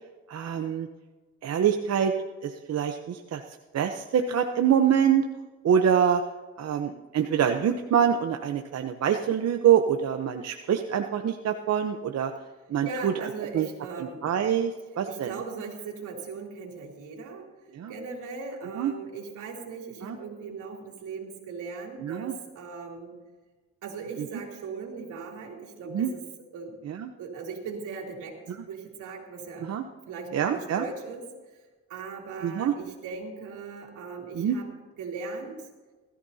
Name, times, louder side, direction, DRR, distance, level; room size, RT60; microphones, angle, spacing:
voice 1, 0.3-0.9 1.4-2.1 2.4-3.4 3.7-5.2 5.6-6.2 6.6-12.3 12.7-13.1 13.5-13.7 14.0-15.3 17.7-17.9 18.8-18.9 20.0-20.2 22.0-22.3 25.9-26.1 26.8-27.1 29.6-29.8 30.3-30.8 32.4-32.7 34.3-34.6, right 8 dB, 55° right, 5 dB, 0.9 m, -25 dB
voice 2, 12.8-14.4 15.1-17.5 17.9-23.1 23.8-26.2 26.5-26.8 27.2-29.7 30.1-31.3 31.9-34.7 34.9-35.6, right 4 dB, 80° right, 0 dB, 3.2 m, -39 dB
19.5 x 14.0 x 2.8 m, 1.3 s
cardioid pair, 90°, 30 cm